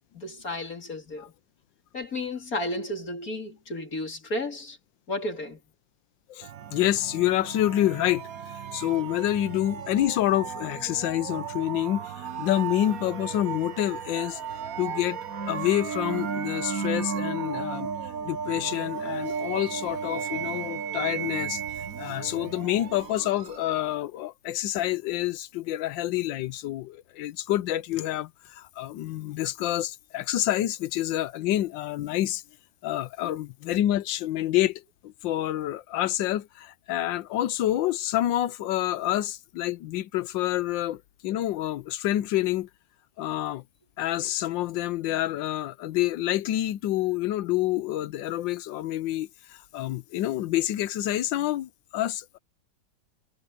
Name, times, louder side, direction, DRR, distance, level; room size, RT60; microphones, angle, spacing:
voice 1, 0.1-1.3 1.9-4.8 5.1-5.6, left 1 dB, 50° left, 3.8 m, -33 dB
voice 2, 6.3-8.3 8.7-14.4 14.8-15.2 15.5-17.9 18.2-21.6 22.0-32.4 32.8-42.7 43.2-43.6 44.0-52.4, left 14 dB, 90° left, 1.4 m, -28 dB
sound 1, 6.4-23.9, right 7 dB, 55° right, 1.4 m, -35 dB
omnidirectional pair, 2.0 m